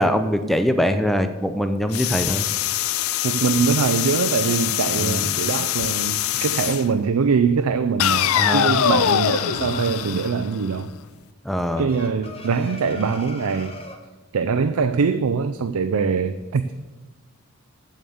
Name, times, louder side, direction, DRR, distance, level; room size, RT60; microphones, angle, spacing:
voice 1, 0.0-2.4 5.0-5.4 8.3-8.7 11.4-11.9, equal, ahead, 8 dB, 0.5 m, -22 dB
sound 1, 1.9-6.9 8.0-10.9, left 11 dB, 70° left, 0.4 m, -23 dB
voice 2, 3.2-10.9 11.8-13.7 14.3-16.9, right 5 dB, 90° right, 10 dB, 0.5 m, -23 dB
sound 2, 4.4-6.1 8.1-10.1 11.9-14.0, left 2 dB, 25° left, 0.9 m, -40 dB
7.9 x 7.3 x 7.0 m, 1.2 s
head